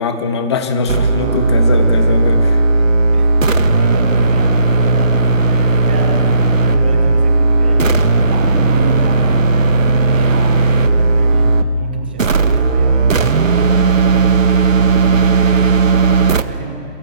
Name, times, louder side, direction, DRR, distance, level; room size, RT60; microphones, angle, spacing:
voice 1, 0.0-2.6, left 4 dB, 20° left, 7 dB, 1.5 m, -20 dB
sound 1, 0.9-11.7 12.2-16.4, right 3 dB, 85° right, 1.7 m, -14 dB
voice 2, 1.3-2.4 3.1-17.0, right 2 dB, 10° right, 1 dB, 0.9 m, -28 dB
28.0 x 24.0 x 8.2 m, 2.4 s
hypercardioid pair, 170°, 38 cm